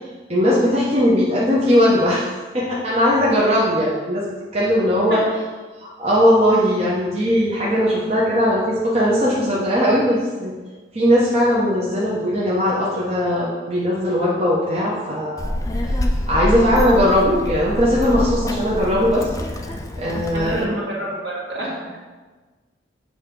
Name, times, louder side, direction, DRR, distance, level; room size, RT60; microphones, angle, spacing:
voice 1, 0.3-2.3 2.5-4.2 4.5-5.2 5.8-10.5 10.9-15.5 15.8-19.3 19.6-20.8, equal, 35° right, -6 dB, 1.0 m, -19 dB
Child speech kid speaking, 15.4-20.7, left 1 dB, 20° left, 0.4 m, -26 dB
voice 2, 20.3-22.0, right 1 dB, 70° right, -5 dB, 2.2 m, -28 dB
8.1 x 3.4 x 5.2 m, 1.3 s
head